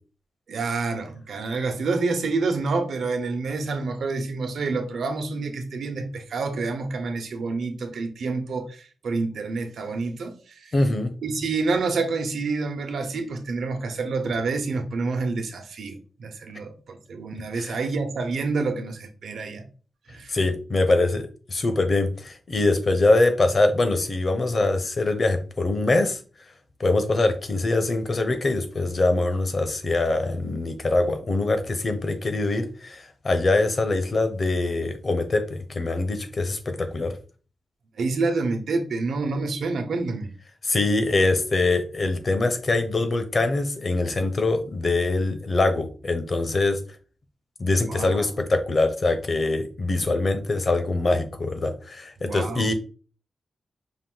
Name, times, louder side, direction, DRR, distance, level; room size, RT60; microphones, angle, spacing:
voice 1, 0.5-10.7 11.2-19.6 20.1-20.4 38.0-40.3 47.8-48.3 52.2-52.7, right 3 dB, 85° right, 1.0 m, -28 dB
voice 2, 10.7-11.1 17.5-17.7 20.3-26.2 26.8-37.1 40.7-46.8 47.6-52.7, left 2 dB, 35° left, 0.6 m, -23 dB
5.4 x 2.5 x 3.8 m
wide cardioid pair, 175°, 0 cm